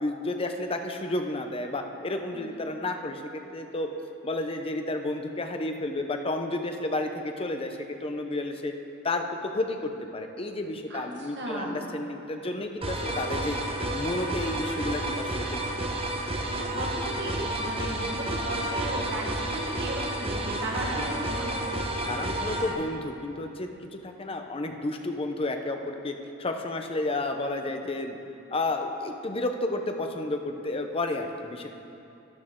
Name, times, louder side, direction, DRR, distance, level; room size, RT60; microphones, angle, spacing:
voice 1, 0.0-3.9 4.2-8.7 9.0-9.2 9.5-13.6 13.9-15.6 20.9-21.1 22.1-28.2 28.5-31.7, left 2 dB, 30° left, 5 dB, 0.7 m, -31 dB
voice 2, 10.9-11.9 16.5-22.2, right 1 dB, 60° right, -1 dB, 1.6 m, -36 dB
sound 1, 12.8-22.7, right 1 dB, 30° right, 1.0 m, -31 dB
12.5 x 10.0 x 3.7 m, 2.7 s
head